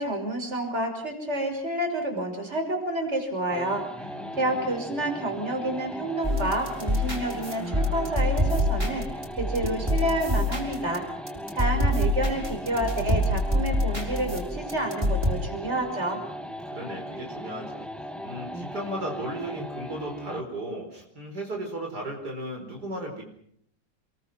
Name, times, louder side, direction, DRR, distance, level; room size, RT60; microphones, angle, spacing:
voice 1, 0.0-3.8 4.4-9.0 9.4-11.0 11.5-16.2, right 1 dB, 35° right, 4 dB, 6.4 m, -29 dB
sound 1, 3.5-20.5, equal, ahead, 1.5 m, -38 dB
voice 2, 4.0-4.6 16.7-17.9 18.2-23.2, right 1 dB, 60° right, 2 dB, 5.2 m, -35 dB
sound 2, 6.2-11.0 11.3-15.3, left 1 dB, 15° right, 6.2 m, -26 dB
29.0 x 23.5 x 6.1 m, 0.68 s
omnidirectional pair, 1.9 m